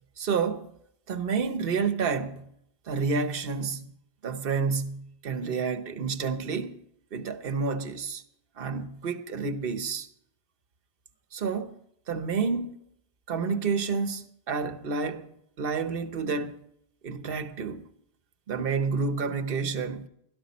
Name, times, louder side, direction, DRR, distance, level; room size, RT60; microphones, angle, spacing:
voice 1, 0.2-0.7 1.1-2.5 2.9-3.9 4.2-6.8 7.1-8.2 8.6-10.1 11.3-11.8 12.1-12.8 13.3-15.3 15.6-16.6 17.0-17.8 18.5-20.1, right 5 dB, 60° right, 1.1 m, -29 dB
16.5 x 13.0 x 4.2 m
omnidirectional pair, 1.1 m